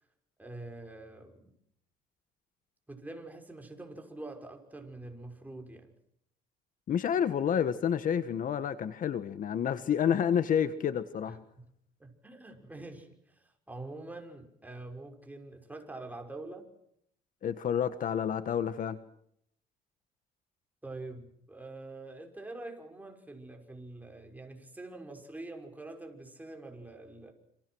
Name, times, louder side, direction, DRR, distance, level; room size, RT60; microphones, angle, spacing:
voice 1, 0.4-1.5 2.9-5.9 11.3-11.6 12.0-16.7 20.8-27.3, right 2 dB, 10° right, 5.8 m, -45 dB
voice 2, 6.9-11.4 17.4-19.0, left 8 dB, 50° left, 1.5 m, -29 dB
28.0 x 26.5 x 6.4 m
cardioid pair, 110°, 17 cm